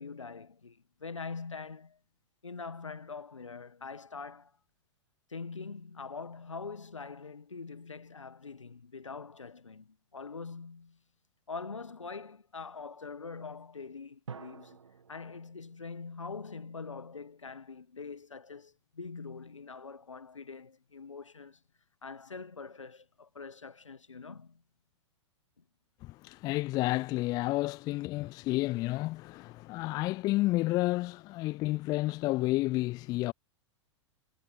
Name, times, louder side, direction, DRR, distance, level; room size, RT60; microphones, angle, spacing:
voice 1, 0.0-2.0 2.4-4.5 5.3-11.0 11.5-14.8 15.1-21.6 22.0-24.6, left 4 dB, 75° left, 1.5 m, -43 dB
sound 1, 14.3-17.0, right 6 dB, 70° right, 1.4 m, -50 dB
voice 2, 26.0-33.3, left 19 dB, 25° left, 0.4 m, -30 dB
figure-of-eight pair, 100°, 16 cm